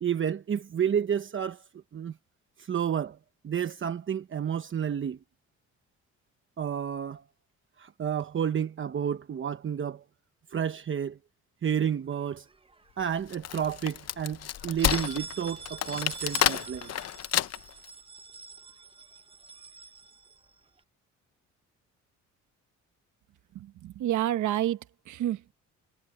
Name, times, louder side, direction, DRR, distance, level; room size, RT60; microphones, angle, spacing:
voice 1, 0.0-1.6 1.9-2.1 2.6-3.2 3.4-5.2 6.6-7.2 7.8-10.0 10.5-11.2 11.6-12.5 13.0-16.9, right 8 dB, 40° right, 1.0 m, -30 dB
sound 1, 12.1-13.0 13.4-13.5 13.9-14.0 14.6-20.8, right 6 dB, 20° right, 1.1 m, -45 dB
Wood, 13.1-17.8, left 11 dB, 55° left, 0.8 m, -30 dB
voice 2, 23.5-25.5, right 12 dB, 75° right, 1.1 m, -29 dB
cardioid pair, 90°, 30 cm